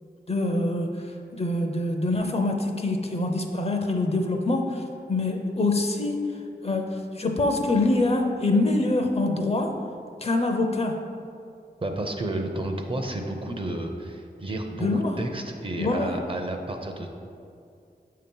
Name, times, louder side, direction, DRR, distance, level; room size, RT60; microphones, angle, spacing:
voice 1, 0.3-1.1 1.3-6.3 6.6-9.7 10.2-11.0 14.8-15.1 15.8-16.1, left 2 dB, 35° left, 3 dB, 0.6 m, -25 dB
voice 2, 11.8-17.1, right 1 dB, 30° right, 3 dB, 0.6 m, -31 dB
7.1 x 2.8 x 5.3 m, 2.5 s
wide cardioid pair, 70°, 17 cm